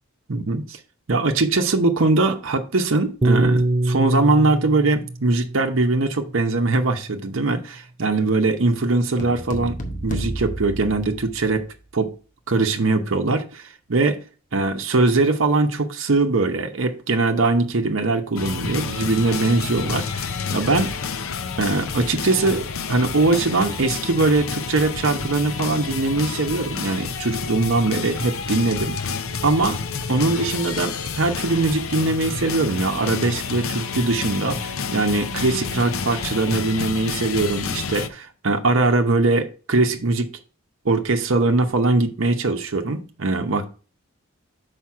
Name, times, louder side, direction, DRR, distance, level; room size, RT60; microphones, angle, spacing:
voice 1, 0.3-0.8 1.1-9.8 10.0-11.7 11.9-12.1 12.5-14.2 14.5-20.9 21.6-29.0 29.4-29.8 30.1-40.3 40.8-43.7, right 3 dB, 65° right, 0.8 m, -21 dB
Piano, 3.2-7.7, right 2 dB, 25° right, 0.6 m, -25 dB
sound 1, 9.2-11.7, right 1 dB, 40° left, 1.0 m, -31 dB
Rise-of-Mankind, 18.4-38.1, left 5 dB, 75° left, 0.6 m, -29 dB
6.0 x 5.0 x 4.7 m
head